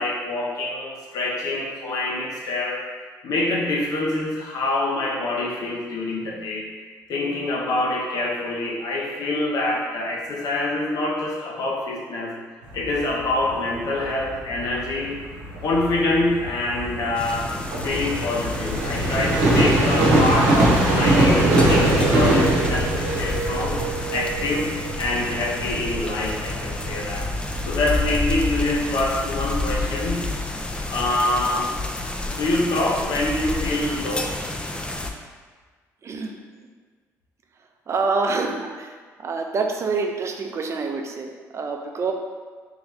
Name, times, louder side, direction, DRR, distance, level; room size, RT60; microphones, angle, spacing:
voice 1, 0.0-2.9 3.2-6.7 7.1-12.4 12.7-15.2 15.6-17.5 17.8-27.3 27.6-30.3 30.9-31.7 32.3-34.3, left 2 dB, 65° left, -1 dB, 0.8 m, -25 dB
sound 1, 12.6-29.2, right 1 dB, 90° right, 0.8 m, -23 dB
sound 2, 17.1-35.1, left 2 dB, 15° left, 0.4 m, -30 dB
voice 2, 36.0-36.4 37.9-38.9 39.2-42.1, right 4 dB, 45° right, 3 dB, 0.5 m, -26 dB
3.6 x 3.0 x 3.5 m, 1.5 s
supercardioid pair, 70°, 7 cm